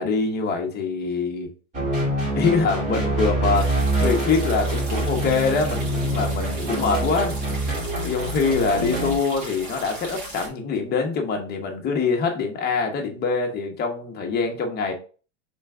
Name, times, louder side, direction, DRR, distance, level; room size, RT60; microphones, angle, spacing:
voice 1, 0.0-1.5 2.4-7.4 8.0-14.9, left 4 dB, 25° left, 1.0 m, -24 dB
sound 1, 1.7-9.2, right 1 dB, 20° right, 1.7 m, -25 dB
sound 2, 3.5-10.5, right 2 dB, 40° right, 1.5 m, -37 dB
4.3 x 3.5 x 3.6 m
supercardioid pair, 135°, 37 cm